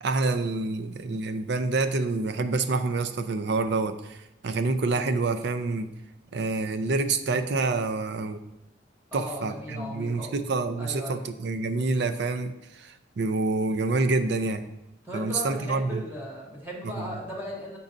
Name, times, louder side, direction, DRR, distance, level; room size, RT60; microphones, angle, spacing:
voice 1, 0.0-4.2 4.4-5.9 6.3-8.4 9.1-14.7 15.1-16.0 17.0-17.1, right 3 dB, 65° right, 10 dB, 0.5 m, -27 dB
voice 2, 9.1-10.3 10.8-11.2 15.0-17.8, left 1 dB, 15° right, -4 dB, 1.0 m, -37 dB
8.3 x 5.3 x 2.6 m, 0.89 s
head